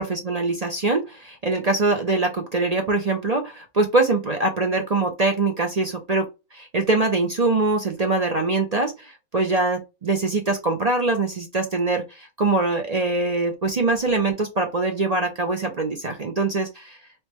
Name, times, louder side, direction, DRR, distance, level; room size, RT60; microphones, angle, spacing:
voice 1, 0.0-17.0, right 3 dB, 50° right, 4 dB, 0.4 m, -23 dB
3.2 x 3.1 x 3.0 m, 0.25 s
omnidirectional pair, 1.6 m